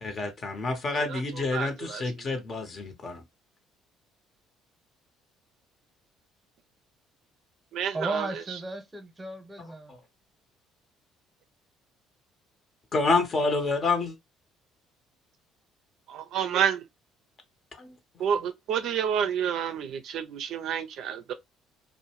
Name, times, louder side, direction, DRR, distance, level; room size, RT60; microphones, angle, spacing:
voice 1, 0.0-3.2 12.9-14.1 17.8-17.9, left 3 dB, 45° left, 0.8 m, -28 dB
voice 2, 0.9-2.0 7.7-8.3 16.1-16.8 18.2-21.3, right 8 dB, 65° right, 0.4 m, -29 dB
voice 3, 7.9-9.9, right 2 dB, 20° right, 0.8 m, -35 dB
2.6 x 2.1 x 2.8 m
supercardioid pair, 65°, 0 cm